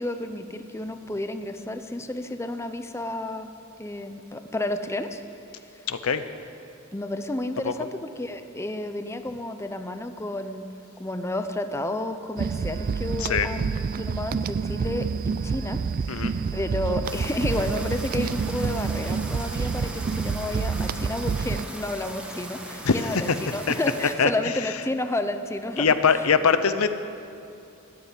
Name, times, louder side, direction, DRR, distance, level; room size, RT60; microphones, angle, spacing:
voice 1, 0.0-3.5 3.8-5.2 5.6-5.9 6.9-10.7 11.0-25.9, left 1 dB, 15° left, 8 dB, 0.6 m, -31 dB
voice 2, 5.9-6.2 7.6-7.7 13.2-13.5 16.1-16.4 22.8-23.0 23.3-23.4 23.7-23.8 24.2-24.3 25.8-26.9, left 6 dB, 90° left, 11 dB, 0.7 m, -22 dB
sound 1, 12.4-21.6, right 5 dB, 40° right, 0.3 m, -28 dB
sound 2, 17.0-24.1, right 1 dB, 5° right, 1.4 m, -39 dB
13.0 x 9.7 x 9.3 m, 2.6 s
head